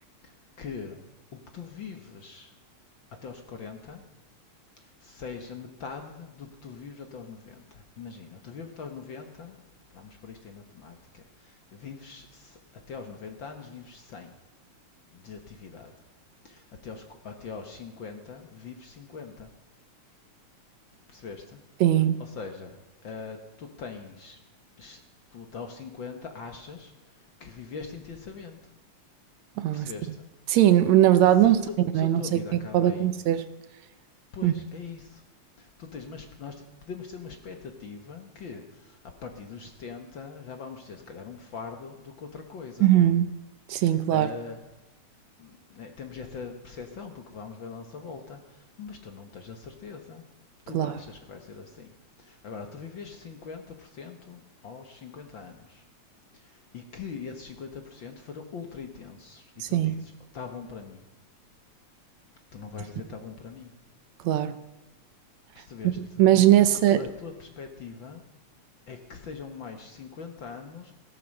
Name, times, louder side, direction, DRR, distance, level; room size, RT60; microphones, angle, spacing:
voice 1, 0.2-1.0 1.3-2.5 3.2-4.0 4.8-9.6 9.9-12.6 12.9-14.4 15.1-15.9 16.4-19.5 21.1-21.6 22.2-24.4 24.8-25.0 25.3-28.7 29.7-30.3 31.3-33.1 34.3-35.2 35.6-43.1 43.7-44.6 45.4-50.2 50.7-55.8 56.3-61.0 62.5-63.8 65.5-66.2 66.6-68.2 68.9-70.9, left 5 dB, 55° left, 5 dB, 1.5 m, -42 dB
voice 2, 21.8-22.2 29.6-29.9 30.5-31.6 31.9-32.2 32.7-33.4 34.4-34.5 42.8-43.3 43.7-44.3 50.7-50.9 59.6-60.0 64.2-64.6 65.8-67.0, right 12 dB, 75° right, 13 dB, 1.9 m, -20 dB
17.0 x 12.0 x 6.4 m, 1.0 s
omnidirectional pair, 3.4 m